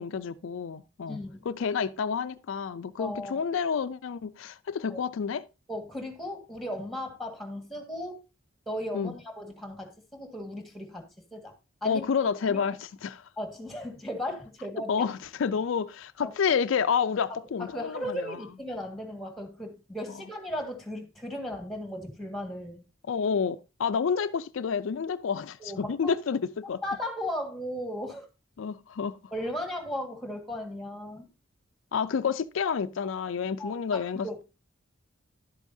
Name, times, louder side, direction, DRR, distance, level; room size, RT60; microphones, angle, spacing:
voice 1, 0.0-5.4 8.9-9.1 11.8-13.3 14.9-18.4 23.1-26.8 28.6-29.2 31.9-34.4, left 6 dB, 70° left, 0.4 m, -29 dB
voice 2, 1.1-1.5 3.0-3.4 4.9-5.0 5.7-8.2 8.7-11.0 11.3-11.5 11.8-12.0 12.4-12.6 13.4-15.1 16.2-16.3 17.6-22.8 25.6-26.1 26.8-28.3 29.3-31.3 33.6-34.4, left 1 dB, ahead, 1.6 m, -36 dB
11.5 x 8.1 x 2.6 m
head